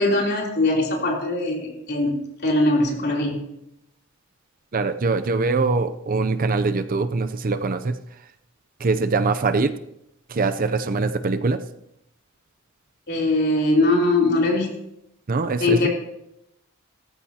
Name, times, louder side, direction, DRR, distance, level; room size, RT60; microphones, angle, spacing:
voice 1, 0.0-3.4 13.1-14.7 15.6-15.9, left 2 dB, 50° left, -2 dB, 3.3 m, -21 dB
voice 2, 4.7-7.9 8.8-9.7 10.3-11.6 15.3-15.8, right 3 dB, 40° right, 10 dB, 0.5 m, -22 dB
17.0 x 14.5 x 2.9 m, 0.81 s
head